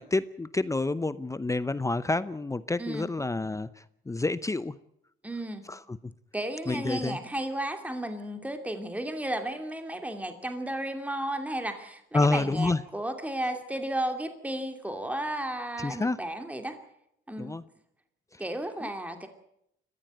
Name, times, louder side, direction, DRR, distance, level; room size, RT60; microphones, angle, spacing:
voice 1, 0.0-3.7 4.1-4.7 5.7-5.8 6.7-7.2 12.1-12.8 15.8-16.2 17.4-17.6, left 2 dB, 15° left, 15 dB, 0.7 m, -28 dB
voice 2, 5.2-5.6 6.3-16.8 17.3-17.5 18.4-19.3, right 1 dB, 5° right, 6 dB, 2.6 m, -33 dB
22.0 x 15.0 x 9.0 m, 0.76 s
cardioid pair, 90°, 20 cm